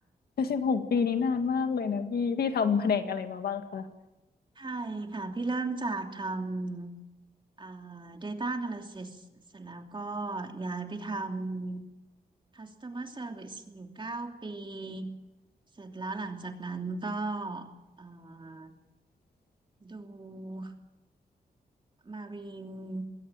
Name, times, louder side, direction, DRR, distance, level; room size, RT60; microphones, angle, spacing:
voice 1, 0.4-3.9, left 5 dB, 80° left, 8 dB, 1.9 m, -28 dB
voice 2, 4.6-6.9 7.6-9.2 9.5-11.8 12.5-15.1 15.8-17.7 18.0-18.7 19.8-20.7 22.0-23.0, right 3 dB, 30° right, 4 dB, 2.9 m, -36 dB
21.5 x 17.0 x 9.1 m, 1.0 s
cardioid pair, 80°, 16 cm